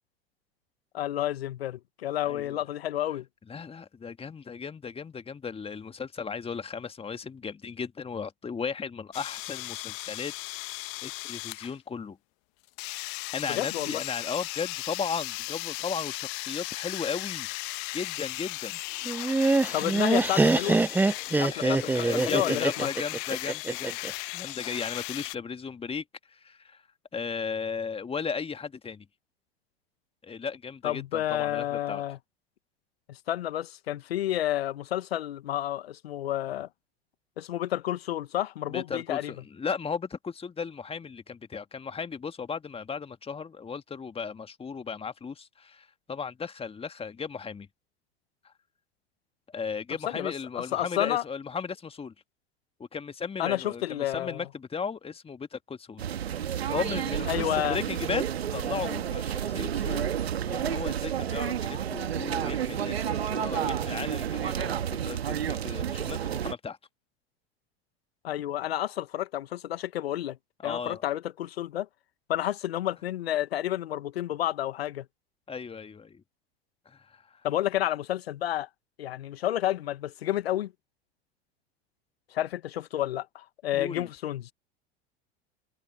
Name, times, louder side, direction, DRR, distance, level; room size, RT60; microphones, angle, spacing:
voice 1, 0.9-3.2 13.5-14.0 19.7-20.8 21.3-22.9 30.8-32.2 33.1-36.7 37.4-39.3 50.1-51.2 53.4-54.4 57.3-57.8 68.2-70.4 70.6-71.9 72.3-75.0 77.4-78.7 79.0-80.7 82.3-84.5, left 13 dB, 75° left, 1.4 m, -30 dB
voice 2, 2.2-2.6 3.5-10.3 10.6-12.2 13.3-17.5 17.9-18.8 21.4-26.8 27.1-29.0 30.2-32.0 38.7-47.7 48.4-48.5 49.5-52.1 52.8-56.0 56.7-66.8 70.6-71.0 75.5-76.2 76.8-77.4 83.7-84.1, left 5 dB, 20° left, 1.7 m, -36 dB
sound 1, 9.1-11.7 12.8-25.4, left 31 dB, 55° left, 1.1 m, -36 dB
Laughter, 19.0-24.1, right 3 dB, 5° right, 0.5 m, -24 dB
sound 2, 56.0-66.5, right 9 dB, 80° right, 1.5 m, -30 dB
hypercardioid pair, 85°, 31 cm